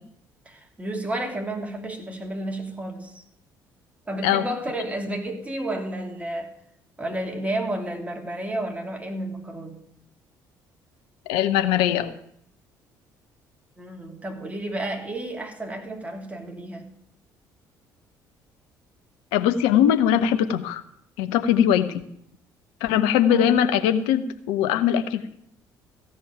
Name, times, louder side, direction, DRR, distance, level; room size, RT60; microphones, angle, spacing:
voice 1, 0.4-3.2 4.1-6.5 7.0-9.8 13.8-16.9 22.9-23.0 23.3-23.5, right 1 dB, 15° right, 2.9 m, -31 dB
voice 2, 11.3-12.2 19.3-20.8 21.2-22.0 22.8-25.3, left 9 dB, 65° left, 0.9 m, -21 dB
15.0 x 5.5 x 8.9 m
figure-of-eight pair, 50°, 10 cm